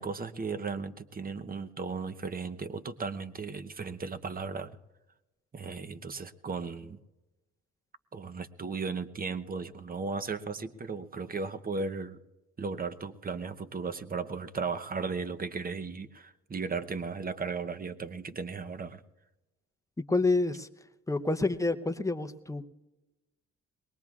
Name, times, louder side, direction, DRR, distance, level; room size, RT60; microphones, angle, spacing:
voice 1, 0.0-4.7 5.5-7.0 8.1-12.2 12.6-19.0, right 4 dB, 30° right, 11 dB, 0.8 m, -36 dB
voice 2, 20.1-20.7 21.1-22.6, left 3 dB, 10° left, 9 dB, 0.7 m, -28 dB
22.5 x 20.0 x 2.4 m, 1.0 s
cardioid pair, 90°, 30 cm